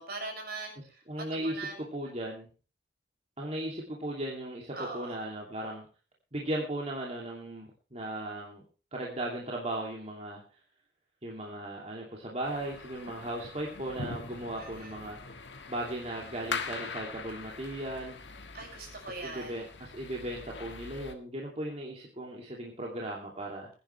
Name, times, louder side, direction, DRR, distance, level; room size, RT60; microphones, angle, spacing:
voice 1, 0.0-1.8 4.7-5.1 14.6-14.9 18.5-19.5, right 3 dB, 55° right, 3 dB, 6.1 m, -41 dB
voice 2, 1.1-2.5 3.4-5.8 6.3-8.6 8.9-10.4 11.2-15.2 15.7-18.2 19.1-23.7, right 1 dB, 35° right, -2 dB, 2.7 m, -37 dB
sound 1, 12.4-21.1, left 4 dB, 75° left, 1.7 m, -42 dB
22.0 x 10.5 x 3.3 m, 0.35 s
head